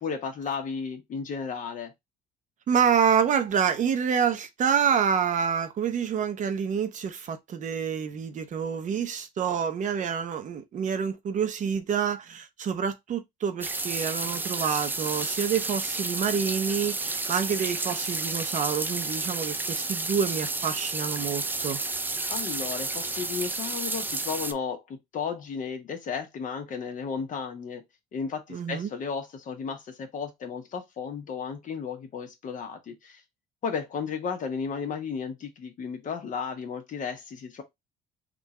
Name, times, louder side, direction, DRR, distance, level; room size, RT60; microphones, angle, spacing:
voice 1, 0.0-1.9 22.3-27.8 28.1-33.2 33.6-37.6, left 6 dB, 50° left, 1.4 m, -34 dB
voice 2, 2.7-21.8 28.5-28.9, right 7 dB, 45° right, 0.7 m, -27 dB
sound 1, 13.6-24.5, right 3 dB, 10° right, 0.3 m, -31 dB
3.7 x 2.5 x 4.2 m
cardioid pair, 110°, 17 cm